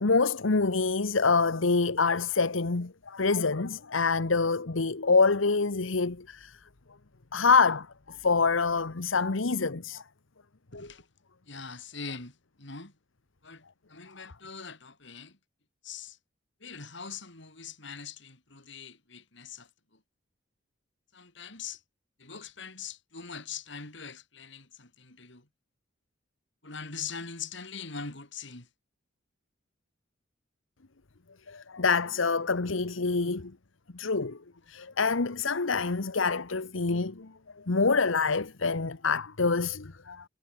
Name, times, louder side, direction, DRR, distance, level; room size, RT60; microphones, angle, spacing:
voice 1, 0.0-6.5 7.3-10.0 31.5-33.5 33.9-34.4 34.7-37.3 37.7-40.2, left 4 dB, 80° left, 1.1 m, -26 dB
voice 2, 10.7-11.0 11.5-12.9 13.4-13.6 13.9-15.4 15.8-16.2 16.6-19.7 21.1-21.8 22.2-25.5 26.6-28.7, left 5 dB, 65° left, 5.2 m, -42 dB
head